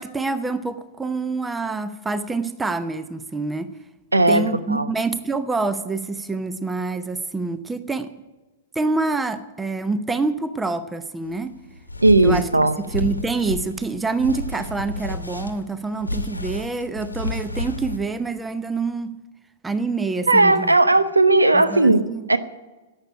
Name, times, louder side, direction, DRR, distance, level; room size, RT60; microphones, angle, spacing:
voice 1, 0.0-3.7 4.3-8.1 8.7-11.6 12.2-12.5 12.9-19.1 19.6-20.7 21.5-22.3, right 3 dB, 10° right, 12 dB, 0.7 m, -26 dB
voice 2, 4.1-4.9 12.0-12.8 20.3-22.4, right 2 dB, 85° right, 12 dB, 0.9 m, -17 dB
sound 1, 11.3-18.0, left 2 dB, 85° left, 1.1 m, -31 dB
11.5 x 8.8 x 9.9 m, 1.2 s
figure-of-eight pair, 105°, 0 cm